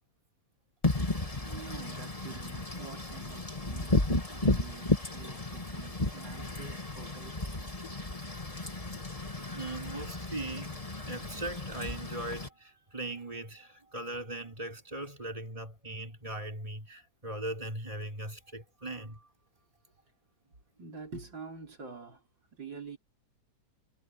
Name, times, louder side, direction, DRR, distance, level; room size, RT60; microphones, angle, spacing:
Wind / Rain, 0.8-12.5, left 2 dB, 20° left, 2.3 m, -33 dB
voice 1, 1.3-7.6 20.8-22.2 22.5-23.0, right 5 dB, 85° right, 5.7 m, -47 dB
voice 2, 9.5-19.3, right 1 dB, 20° right, 6.0 m, -39 dB
omnidirectional pair, 1.9 m